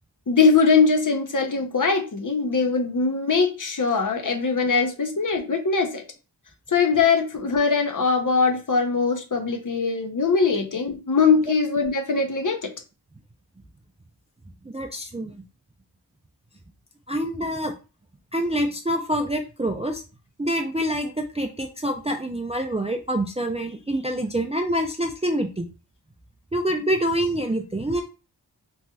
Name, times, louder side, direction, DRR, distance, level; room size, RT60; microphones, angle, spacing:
voice 1, 0.3-6.0 6.7-12.7, left 4 dB, 45° left, 4 dB, 0.6 m, -21 dB
voice 2, 14.7-15.4 17.1-17.7 18.3-20.0 20.4-25.7 26.5-28.0, right 1 dB, 15° right, 3 dB, 0.3 m, -26 dB
3.1 x 2.8 x 2.3 m, 0.32 s
wide cardioid pair, 60°, 43 cm